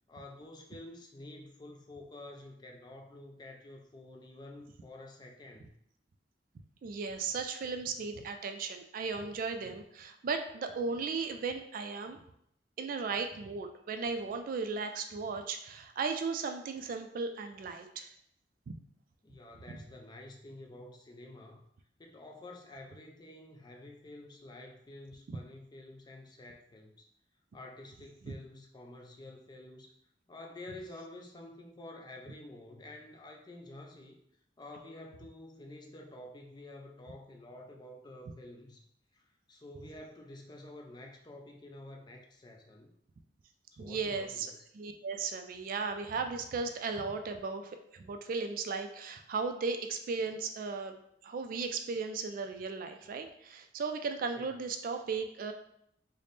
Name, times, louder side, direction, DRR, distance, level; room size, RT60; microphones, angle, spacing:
voice 1, 0.1-5.8 19.2-21.6 22.0-27.1 27.5-29.9 30.3-34.2 34.6-38.8 39.1-42.9 43.7-44.6 54.3-54.7, left 1 dB, 25° left, 2 dB, 0.4 m, -49 dB
voice 2, 6.8-12.2 12.8-18.1 18.7-18.8 19.7-19.8 25.3-25.4 28.3-28.4 43.8-50.9 51.2-55.5, right 4 dB, 50° right, 7 dB, 0.3 m, -36 dB
3.3 x 2.1 x 4.0 m, 0.72 s
head